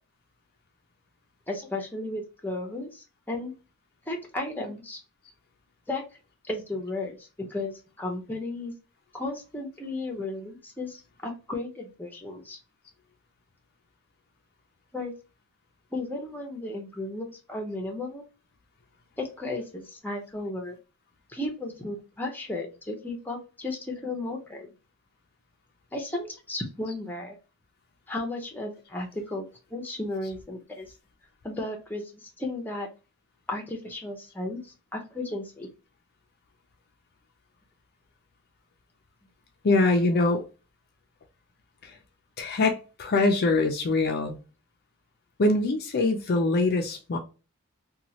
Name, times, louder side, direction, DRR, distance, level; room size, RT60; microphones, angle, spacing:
voice 1, 1.5-3.5 4.1-5.0 5.9-6.0 6.5-8.7 9.1-12.6 14.9-15.1 15.9-18.2 19.2-20.8 21.3-24.7 25.9-27.4 28.1-29.4 29.7-30.9 31.4-32.9 33.5-35.7, left 2 dB, 10° left, 0.7 m, -34 dB
voice 2, 39.6-40.4 41.8-42.0 42.4-44.4 45.4-47.2, left 2 dB, 45° left, 0.5 m, -23 dB
3.0 x 2.3 x 2.7 m
head